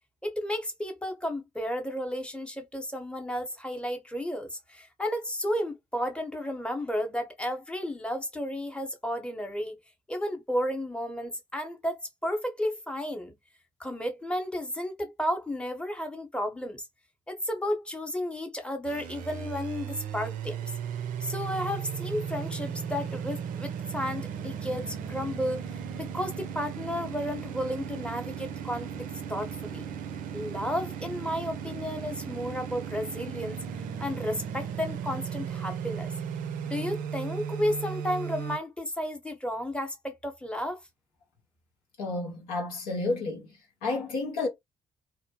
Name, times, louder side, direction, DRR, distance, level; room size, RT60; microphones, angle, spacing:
voice 1, 0.2-9.8 10.1-13.4 13.8-16.9 17.3-20.7 21.2-25.6 26.0-29.8 30.3-33.6 34.0-36.1 36.7-40.8, equal, 5° left, 0.8 m, -33 dB
sound 1, 18.8-38.6, right 8 dB, 65° right, 0.4 m, -36 dB
voice 2, 42.0-43.5 43.8-44.5, left 3 dB, 80° left, 0.8 m, -31 dB
2.2 x 2.0 x 2.8 m
hypercardioid pair, 45°, 15 cm